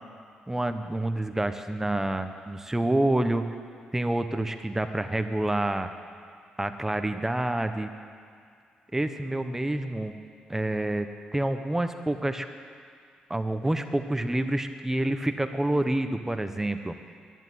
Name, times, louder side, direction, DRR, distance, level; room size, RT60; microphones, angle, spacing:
voice 1, 0.5-3.5 3.9-5.9 6.6-7.9 8.9-10.1 10.5-12.5 13.3-16.9, right 1 dB, 15° right, 8 dB, 1.0 m, -28 dB
11.0 x 10.5 x 9.4 m, 2.3 s
supercardioid pair, 60°, 3 cm